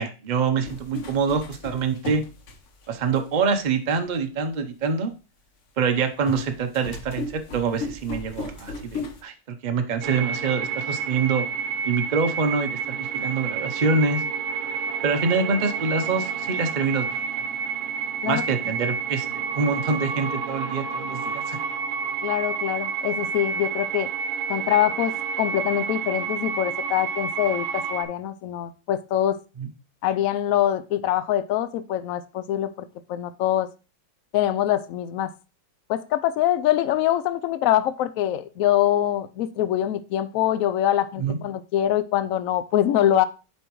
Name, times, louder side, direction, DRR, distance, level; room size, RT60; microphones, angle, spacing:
voice 1, 0.0-2.2 2.9-5.1 5.8-11.5 11.8-14.2 15.0-17.2 18.2-21.6 29.6-29.7 41.2-41.4, right 5 dB, 75° right, 7 dB, 0.4 m, -25 dB
sound 1, 0.6-3.2 3.9-4.0 6.3-9.2, left 3 dB, 50° left, 1.0 m, -35 dB
sound 2, 10.0-28.0, right 6 dB, 55° right, 1.0 m, -29 dB
voice 2, 22.2-24.1 24.5-29.4 30.0-33.7 34.3-35.3 35.9-43.3, left 12 dB, 75° left, 13 dB, 0.8 m, -24 dB
8.3 x 5.5 x 3.0 m, 0.33 s
omnidirectional pair, 1.9 m